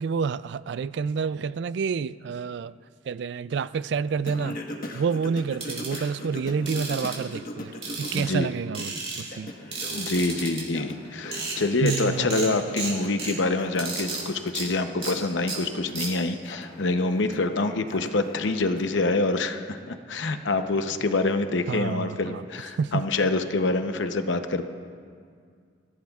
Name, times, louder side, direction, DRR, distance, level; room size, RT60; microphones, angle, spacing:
voice 1, 0.0-2.7 3.1-4.6 4.9-9.5 11.8-12.6 21.7-22.4 22.8-23.0, right 6 dB, 60° right, 0.3 m, -29 dB
Singing, 4.3-8.4 8.8-19.2, left 1 dB, 45° left, 1.3 m, -40 dB
sound 1, 5.6-6.0 6.7-7.2 7.8-8.4 8.7-9.2 9.7-10.6 11.0-11.1 11.3-11.6 11.9-12.0 12.3-12.5 12.8-13.3 13.8-14.2 14.5-14.6 15.0-15.1 15.5-15.6 15.9-16.1, right 4 dB, 35° right, 4.3 m, -32 dB
voice 2, 8.1-8.5 9.9-24.6, left 2 dB, 75° left, 0.8 m, -26 dB
25.0 x 15.5 x 2.4 m
head